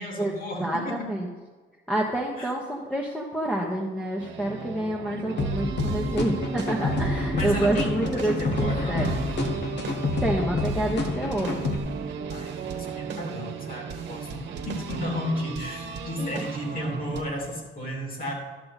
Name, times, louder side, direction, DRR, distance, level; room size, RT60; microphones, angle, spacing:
voice 1, 0.0-1.1 2.4-2.5 7.3-9.2 12.3-18.3, left 1 dB, 45° left, 0 dB, 2.9 m, -33 dB
voice 2, 0.6-1.3 1.9-9.1 10.2-11.6 16.2-16.3, right 1 dB, 5° left, -3 dB, 1.3 m, -28 dB
sound 1, 4.2-17.2, right 6 dB, 65° right, 1.2 m, -36 dB
sound 2, 5.4-11.8, left 2 dB, 60° left, 1.3 m, -28 dB
12.5 x 6.6 x 4.2 m, 1.4 s
cardioid pair, 90°, 20 cm